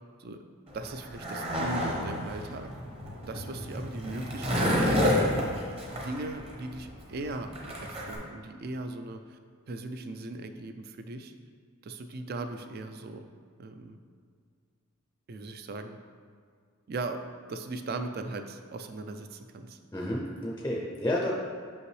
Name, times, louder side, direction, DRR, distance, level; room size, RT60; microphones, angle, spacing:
Skateboard, 0.7-8.2, equal, 25° right, 0.9 m, -30 dB
voice 1, 0.7-2.7 3.3-5.2 5.9-7.5 7.8-9.4 9.7-11.3 11.8-13.3 13.6-14.0 15.3-16.0 16.9-19.8, right 2 dB, 45° right, 8 dB, 0.3 m, -38 dB
voice 2, 19.9-21.3, left 1 dB, 10° left, -3 dB, 0.5 m, -30 dB
6.0 x 5.5 x 3.2 m, 2.1 s
head